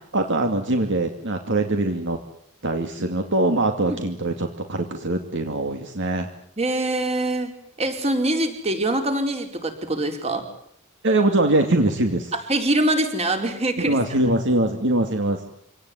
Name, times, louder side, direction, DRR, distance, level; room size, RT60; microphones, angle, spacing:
voice 1, 0.1-2.2 2.6-6.3 11.0-12.3 13.9-15.5, right 2 dB, 60° right, 5 dB, 2.5 m, -22 dB
voice 2, 6.6-7.5 7.8-10.4 12.5-14.0, right 1 dB, 30° right, 5 dB, 4.7 m, -24 dB
26.0 x 18.5 x 9.8 m, 0.67 s
head